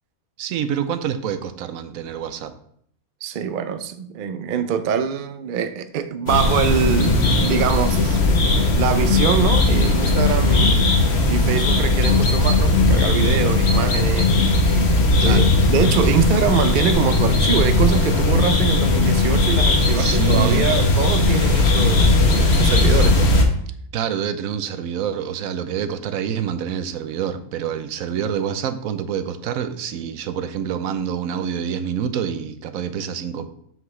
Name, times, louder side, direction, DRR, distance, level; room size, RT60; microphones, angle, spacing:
voice 1, 0.4-2.5 15.2-15.5 19.9-20.8 23.9-33.5, right 8 dB, 70° right, 1.0 m, -27 dB
voice 2, 3.2-8.2 8.8-11.0 11.3-23.3, right 7 dB, 90° right, 0.4 m, -24 dB
sound 1, 6.3-23.4, left 2 dB, 50° left, 1.2 m, -17 dB
7.3 x 5.9 x 3.2 m
omnidirectional pair, 1.5 m